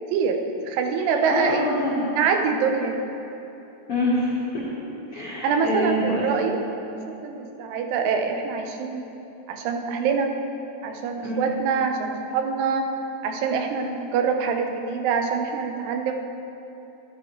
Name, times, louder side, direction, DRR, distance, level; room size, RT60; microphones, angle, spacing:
voice 1, 0.1-1.6 2.2-3.1 5.2-6.6 6.9-9.1 9.5-10.3 10.8-12.9 13.2-16.1, right 5 dB, 80° right, 4 dB, 2.8 m, -25 dB
voice 2, 1.0-2.1 3.9-4.7 5.1-6.4 11.2-11.5, left 1 dB, 85° left, -7 dB, 1.2 m, -26 dB
14.0 x 10.5 x 3.1 m, 3.0 s
omnidirectional pair, 4.8 m